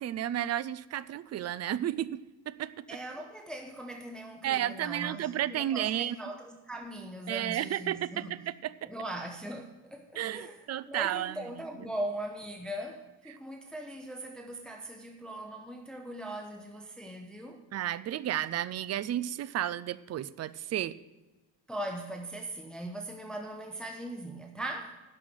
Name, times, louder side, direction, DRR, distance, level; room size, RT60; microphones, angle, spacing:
voice 1, 0.0-2.9 4.4-6.2 7.3-8.9 10.2-11.4 17.7-21.0, right 12 dB, 35° right, 0.4 m, -32 dB
voice 2, 2.9-8.4 8.8-17.6 21.7-25.0, right 1 dB, ahead, 0.9 m, -40 dB
11.5 x 5.8 x 7.9 m
cardioid pair, 135°, 46 cm